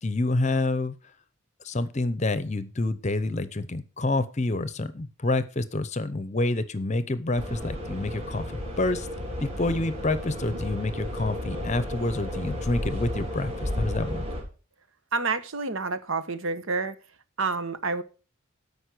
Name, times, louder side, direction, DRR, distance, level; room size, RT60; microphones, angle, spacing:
voice 1, 0.0-0.9 1.6-8.5 8.8-9.1 9.4-14.2, left 2 dB, 35° left, 14 dB, 0.7 m, -28 dB
sound 1, 7.4-14.4, left 1 dB, 30° right, 3.6 m, -33 dB
voice 2, 15.1-16.9 17.4-18.0, right 4 dB, 70° right, 11 dB, 1.1 m, -28 dB
13.0 x 5.4 x 6.1 m, 0.35 s
head